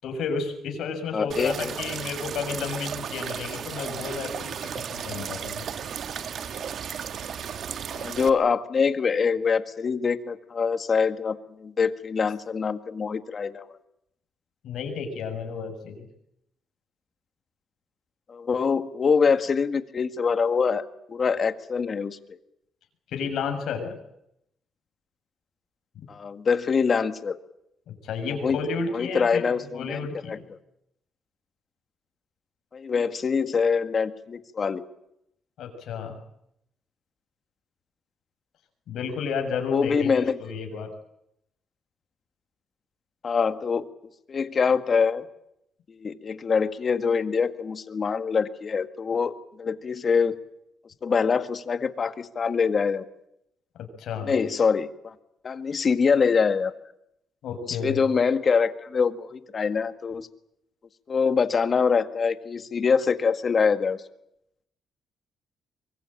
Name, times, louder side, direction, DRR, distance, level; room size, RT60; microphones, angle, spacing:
voice 1, 0.0-5.6 14.6-16.1 23.1-23.9 26.0-26.1 27.9-30.4 35.6-36.2 38.9-40.9 53.8-54.3 57.4-58.0, left 5 dB, 75° left, 5 dB, 6.8 m, -32 dB
voice 2, 1.1-1.7 7.9-13.7 18.3-20.8 21.1-22.2 26.1-27.4 28.4-28.6 28.9-30.0 30.3-30.6 32.7-34.8 39.7-40.4 43.2-43.9 44.3-45.2 46.0-50.4 51.0-53.0 54.3-55.1 55.4-56.7 57.7-60.3 61.1-64.0, left 5 dB, 45° left, 10 dB, 1.9 m, -24 dB
sound 1, 1.3-8.3, right 8 dB, 60° right, 1.6 m, -34 dB
24.0 x 22.0 x 9.0 m, 0.80 s
cardioid pair, 90°, 0 cm